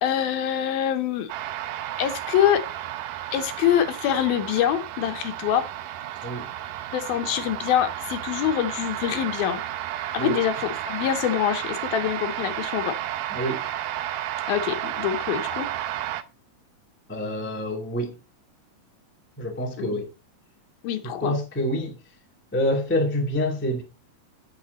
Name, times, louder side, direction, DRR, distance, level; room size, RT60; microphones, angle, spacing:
voice 1, 0.0-1.3 2.0-2.6 3.3-5.7 6.9-9.6 10.1-13.0 14.5-15.7 19.8-19.9 20.8-21.3, left 10 dB, 75° left, 2.6 m, -25 dB
sound 1, 1.3-16.2, right 13 dB, 85° right, 1.8 m, -32 dB
voice 2, 13.3-13.6 17.1-18.1 19.4-20.1 21.2-22.0 22.5-23.8, equal, 5° left, 0.8 m, -26 dB
9.3 x 8.3 x 4.0 m
omnidirectional pair, 4.7 m